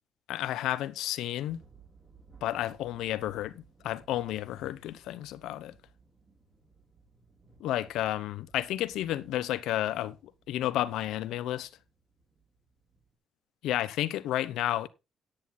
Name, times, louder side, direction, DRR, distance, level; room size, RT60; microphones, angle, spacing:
voice 1, 0.3-1.6 2.4-5.8 7.6-11.7 13.6-14.9, left 13 dB, 90° left, 0.9 m, -31 dB
sound 1, 1.5-13.1, right 4 dB, 35° right, 5.0 m, -61 dB
10.5 x 9.7 x 4.0 m
cardioid pair, 90°, 0 cm